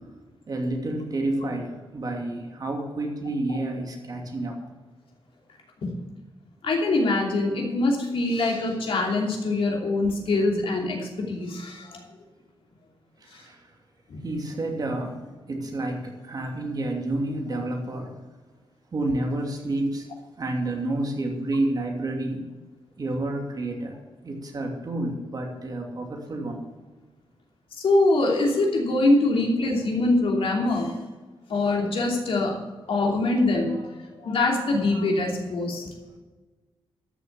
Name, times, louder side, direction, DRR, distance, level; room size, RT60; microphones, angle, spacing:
voice 1, 0.5-4.6 13.2-13.6 14.2-15.2 15.5-18.1 18.9-20.1 20.4-22.4 23.0-24.0 24.2-26.6, right 2 dB, 45° right, 1 dB, 2.8 m, -29 dB
voice 2, 6.6-12.0 14.1-14.2 27.8-30.9 31.5-32.6 32.9-33.9 34.2-35.9, left 2 dB, 75° left, 0 dB, 2.9 m, -23 dB
13.0 x 6.9 x 7.1 m, 1.3 s
wide cardioid pair, 125°, 9 cm